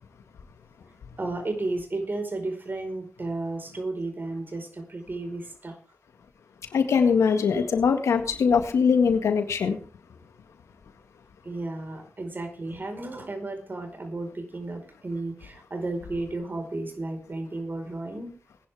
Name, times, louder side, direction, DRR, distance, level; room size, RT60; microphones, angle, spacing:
voice 1, 1.2-5.8 11.4-18.4, right 2 dB, 45° right, 6 dB, 4.7 m, -33 dB
voice 2, 6.7-9.8, left 6 dB, 85° left, 7 dB, 1.8 m, -22 dB
20.0 x 11.0 x 3.5 m, 0.39 s
cardioid pair, 40°, 5 cm